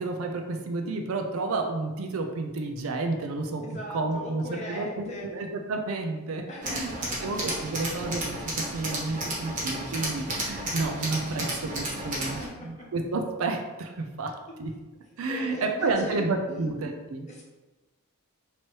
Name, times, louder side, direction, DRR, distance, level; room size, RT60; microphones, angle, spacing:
voice 1, 0.0-3.6 3.9-6.9 7.2-14.3 14.6-14.7 15.2-17.3, right 3 dB, 65° right, 4 dB, 0.5 m, -31 dB
voice 2, 3.6-5.3 6.5-7.4 12.2-12.7 15.3-16.7 17.3-17.4, left 1 dB, 30° left, -3 dB, 0.9 m, -39 dB
Tools, 6.6-12.5, right 1 dB, 35° right, 1.1 m, -32 dB
3.1 x 2.9 x 4.4 m, 1.2 s
head